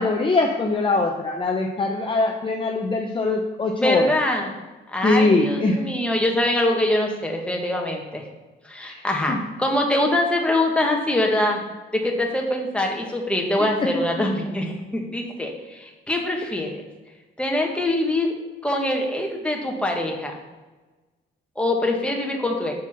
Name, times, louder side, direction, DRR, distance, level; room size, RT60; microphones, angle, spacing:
voice 1, 0.0-4.2 5.0-5.8 8.8-9.0 9.3-9.4 13.6-13.7 14.2-14.3, left 3 dB, 25° left, 1 dB, 0.7 m, -22 dB
voice 2, 3.8-4.5 4.9-8.2 8.6-11.6 11.9-16.8 17.4-18.3 18.6-20.3 21.6-22.7, left 1 dB, 5° left, 0 dB, 1.4 m, -23 dB
6.1 x 4.4 x 5.8 m, 1.2 s
cardioid pair, 90°, 20 cm